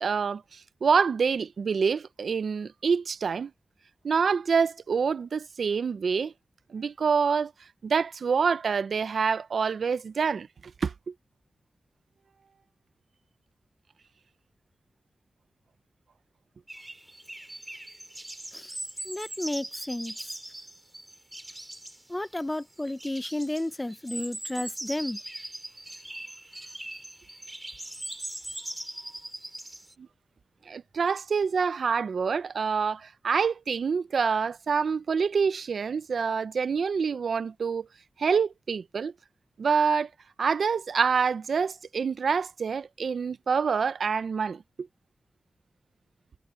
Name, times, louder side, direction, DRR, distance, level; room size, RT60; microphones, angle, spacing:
voice 1, 0.0-3.5 4.0-6.3 6.7-7.5 7.8-10.5 10.8-11.1 30.7-37.9 38.2-39.1 39.6-40.1 40.4-44.9, right 5 dB, 80° right, 0.5 m, -26 dB
sound 1, 16.7-29.9, right 1 dB, 15° right, 3.7 m, -40 dB
voice 2, 19.0-20.1 22.1-25.2, left 1 dB, 15° left, 0.6 m, -32 dB
wide cardioid pair, 80°, 0 cm